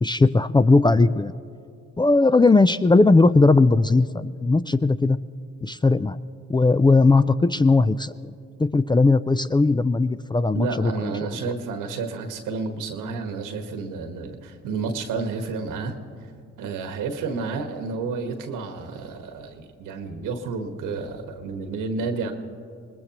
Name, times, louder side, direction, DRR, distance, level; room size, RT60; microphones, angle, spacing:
voice 1, 0.0-1.3 2.0-5.2 5.6-6.2 6.5-8.1 8.6-11.1, left 3 dB, 15° left, 14 dB, 0.4 m, -18 dB
voice 2, 10.5-16.0 16.6-22.3, right 4 dB, 85° right, 6 dB, 1.4 m, -30 dB
25.0 x 19.5 x 3.0 m, 2.5 s
supercardioid pair, 55°, 31 cm